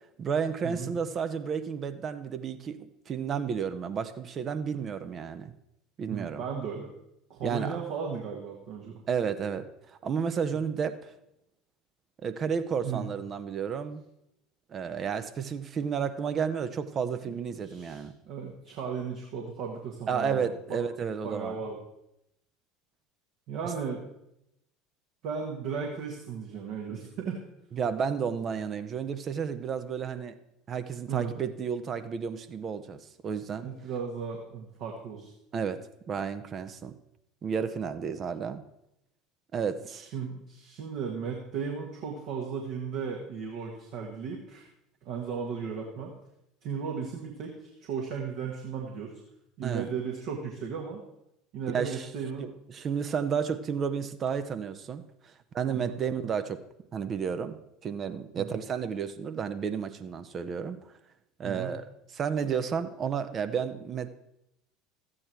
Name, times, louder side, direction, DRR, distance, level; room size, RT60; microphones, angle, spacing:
voice 1, 0.2-5.5 6.0-6.4 7.4-7.8 9.1-11.0 12.2-14.0 14.7-18.1 20.1-21.6 27.7-30.4 30.7-33.7 35.5-35.8 36.1-36.9 37.4-38.6 39.5-40.1 49.6-49.9 51.7-52.1 52.4-55.0 55.5-56.6 56.9-60.8 61.4-61.8 62.1-64.1, right 6 dB, 35° right, 10 dB, 0.8 m, -32 dB
voice 2, 6.1-6.9 7.3-9.0 12.8-13.1 17.2-20.8 21.2-21.8 23.5-24.0 25.2-27.4 31.1-31.3 33.6-35.3 39.9-44.7 45.0-46.1 46.6-49.2 49.6-51.0 51.5-52.5 55.7-56.0 58.4-58.6 61.4-61.7, right 6 dB, 55° right, 0 dB, 1.6 m, -36 dB
13.5 x 8.7 x 4.5 m, 0.84 s
figure-of-eight pair, 70°, 0 cm